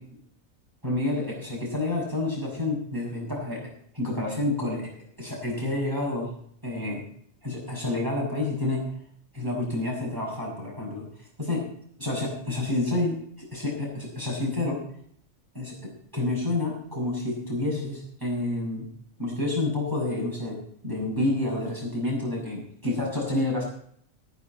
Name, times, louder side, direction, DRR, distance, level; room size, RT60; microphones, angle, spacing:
voice 1, 0.8-3.6 3.9-4.9 5.2-6.3 6.6-7.0 7.4-8.9 9.3-11.1 11.4-11.7 12.0-14.9 15.5-18.9 19.2-23.6, left 2 dB, 15° right, -4 dB, 6.3 m, -29 dB
16.5 x 9.9 x 4.3 m, 0.64 s
omnidirectional pair, 1.4 m